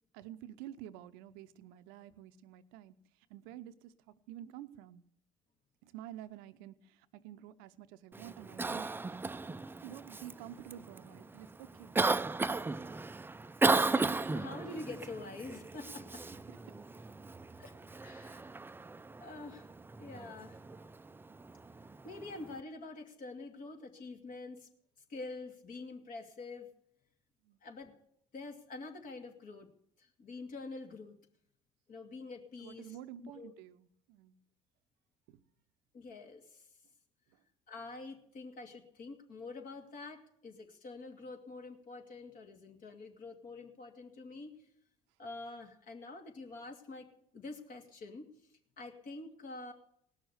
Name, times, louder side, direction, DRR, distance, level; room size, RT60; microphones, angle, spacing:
voice 1, 0.1-5.0 5.8-8.9 9.8-12.0 16.5-16.6 27.4-27.6 32.6-34.4 35.3-35.4 37.3-37.4, right 12 dB, 75° right, 12 dB, 0.7 m, -50 dB
Cough, 8.1-22.6, right 3 dB, 15° right, 0.5 m, -36 dB
voice 2, 13.6-16.2 17.6-17.7 18.0-18.5 19.2-19.7 20.0-20.6 21.8-24.7 25.1-26.7 27.6-27.9 28.3-29.7 30.0-31.2 31.9-33.0 33.2-33.5 35.9-36.7 37.7-44.5 45.2-47.1 47.3-48.3 48.8-49.7, left 3 dB, 55° left, 4 dB, 2.5 m, -46 dB
18.0 x 6.5 x 7.9 m, 0.71 s
hypercardioid pair, 65°, 16 cm